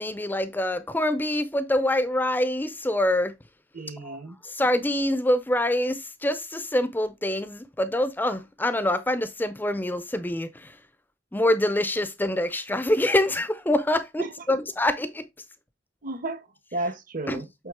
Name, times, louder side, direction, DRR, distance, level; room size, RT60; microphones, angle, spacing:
voice 1, 0.0-3.3 4.6-10.5 11.3-15.3 17.3-17.4, left 1 dB, 10° left, 0.5 m, -25 dB
voice 2, 3.7-4.4 14.2-14.6 16.0-17.7, right 2 dB, 50° right, 1.0 m, -34 dB
8.2 x 3.7 x 3.6 m
head